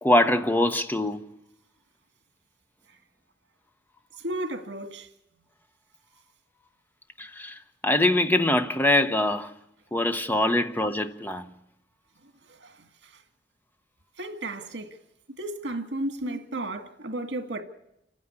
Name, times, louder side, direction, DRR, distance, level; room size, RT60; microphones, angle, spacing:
voice 1, 0.0-1.3 7.2-9.5 9.9-11.5 16.2-16.4, left 1 dB, 10° left, 1.0 m, -23 dB
voice 2, 4.2-5.1 14.2-14.9 15.4-17.6, right 1 dB, 80° right, 2.0 m, -33 dB
29.0 x 9.7 x 9.9 m
head